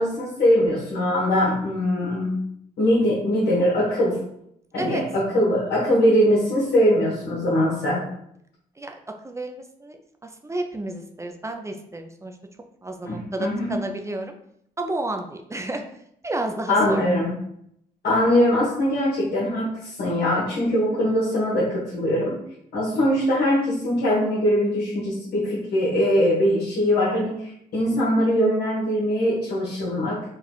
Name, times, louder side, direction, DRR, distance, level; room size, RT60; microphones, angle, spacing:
voice 1, 0.0-2.4 2.8-4.2 4.7-8.0 13.0-13.8 16.7-17.3 18.0-22.4 22.7-30.2, equal, 80° left, -7 dB, 1.5 m, -22 dB
voice 2, 9.2-12.4 12.8-14.3 14.8-15.8 16.2-17.1, right 2 dB, 20° right, 4 dB, 0.5 m, -31 dB
4.1 x 2.4 x 4.4 m, 0.72 s
cardioid pair, 85°, 16 cm